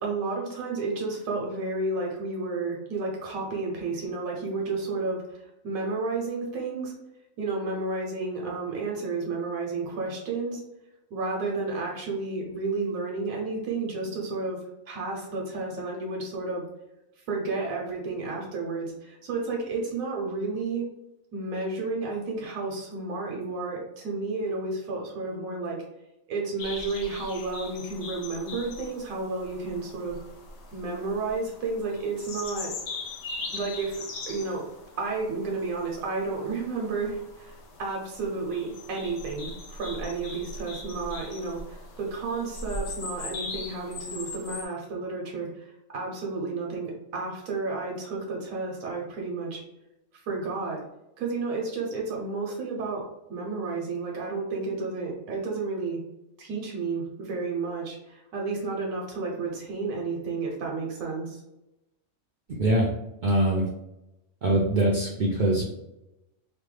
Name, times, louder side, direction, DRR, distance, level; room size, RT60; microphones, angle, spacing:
voice 1, 0.0-6.9 7.4-10.6 11.1-14.6 14.9-16.6 17.3-20.9 21.3-25.8 26.3-30.2 30.7-32.7 33.5-34.6 35.0-49.6 50.3-50.8 51.2-53.0 53.3-56.0 56.4-61.4, right 3 dB, 85° right, -1 dB, 1.2 m, -31 dB
sound 1, 26.6-44.7, left 3 dB, 65° left, 0.9 m, -40 dB
voice 2, 62.6-62.9 63.2-63.7 64.4-65.6, right 1 dB, 60° right, -3 dB, 0.5 m, -23 dB
3.1 x 2.2 x 3.1 m, 0.91 s
omnidirectional pair, 1.4 m